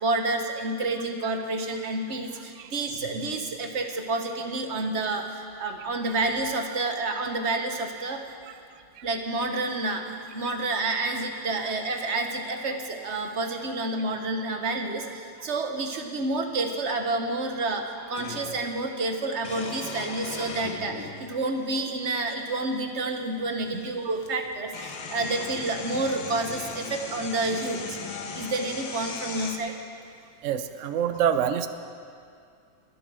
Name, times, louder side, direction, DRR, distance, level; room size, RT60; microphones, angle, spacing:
voice 1, 0.0-5.3 5.6-8.2 9.0-10.0 10.3-15.1 15.4-27.8 28.3-29.7, right 2 dB, 45° right, 5 dB, 1.1 m, -29 dB
sound 1, 16.5-16.6 18.2-18.7 19.4-21.2 22.2-22.3 23.7-23.8 24.2-29.6, left 5 dB, 80° left, 1.9 m, -38 dB
voice 2, 30.4-31.7, right 9 dB, 80° right, 10 dB, 0.6 m, -25 dB
23.5 x 7.9 x 6.3 m, 2.3 s
omnidirectional pair, 2.1 m